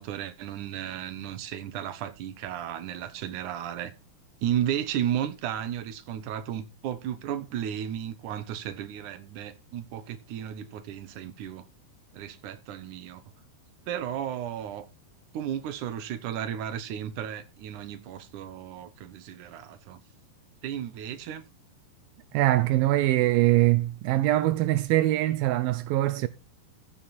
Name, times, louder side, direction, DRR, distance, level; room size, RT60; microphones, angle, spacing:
voice 1, 0.0-3.9 4.4-11.7 12.1-13.2 13.9-14.9 15.3-20.0 20.6-21.5, right 10 dB, 65° right, 2.1 m, -34 dB
voice 2, 22.3-26.3, right 16 dB, 85° right, 2.1 m, -23 dB
15.5 x 7.7 x 4.3 m
omnidirectional pair, 5.0 m